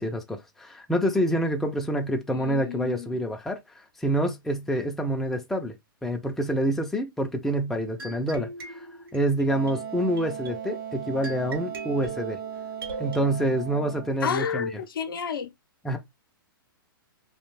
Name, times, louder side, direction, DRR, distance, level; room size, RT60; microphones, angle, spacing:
voice 1, 0.0-5.7 6.0-12.4 13.0-14.7 15.8-16.0, right 1 dB, ahead, 0.4 m, -27 dB
voice 2, 2.3-3.2 14.2-15.5, left 7 dB, 75° left, 0.6 m, -31 dB
sound 1, 8.0-13.2, right 3 dB, 85° right, 1.0 m, -41 dB
Wind instrument woodwind instrument, 9.5-14.2, right 9 dB, 60° right, 0.7 m, -37 dB
2.4 x 2.2 x 3.0 m
hypercardioid pair, 125°, 12 cm